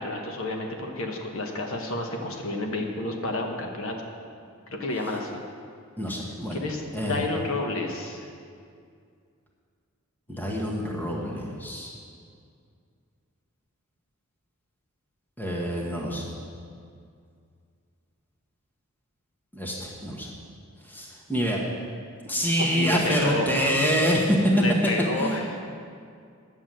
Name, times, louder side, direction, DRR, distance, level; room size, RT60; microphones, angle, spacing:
voice 1, 0.0-4.0 4.7-5.4 6.5-8.3 10.3-11.5 22.6-23.5 24.5-25.6, left 2 dB, 70° left, 2 dB, 1.2 m, -31 dB
voice 2, 6.0-6.6 6.9-7.2 10.3-11.9 15.4-16.3 19.5-20.3 20.9-21.6 22.2-24.6 25.2-25.6, equal, 10° left, -3 dB, 1.6 m, -26 dB
10.0 x 7.2 x 7.6 m, 2.3 s
head